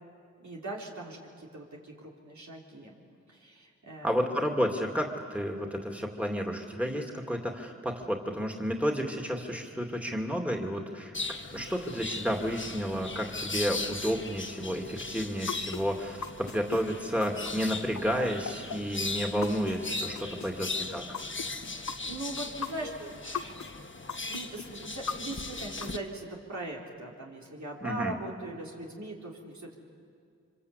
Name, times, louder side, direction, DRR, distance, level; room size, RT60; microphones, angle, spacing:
voice 1, 0.4-3.0 3.3-4.2 20.3-20.8 21.6-23.5 24.3-29.8, right 2 dB, 75° right, -2 dB, 3.8 m, -41 dB
voice 2, 4.0-11.1 11.5-21.0 27.8-28.1, equal, 5° right, 2 dB, 2.6 m, -31 dB
sound 1, 11.1-26.0, left 3 dB, 40° left, 1.5 m, -38 dB
sound 2, 15.5-19.8 20.1-23.7 24.1-25.9, left 6 dB, 75° left, 1.0 m, -38 dB
25.5 x 25.0 x 8.4 m, 2.3 s
cardioid pair, 50°, 29 cm